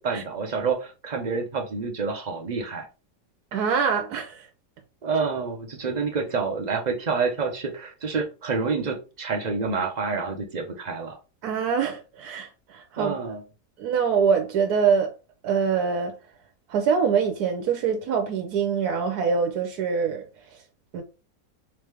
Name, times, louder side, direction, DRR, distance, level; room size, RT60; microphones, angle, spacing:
voice 1, 0.0-2.8 5.0-11.2 13.0-13.4, right 4 dB, 50° right, 0.5 m, -28 dB
voice 2, 3.5-4.5 11.4-13.1 13.8-15.1 15.4-16.1 16.7-20.2 20.9-21.0, right 6 dB, 75° right, 1.1 m, -24 dB
3.6 x 3.2 x 3.3 m
omnidirectional pair, 1.7 m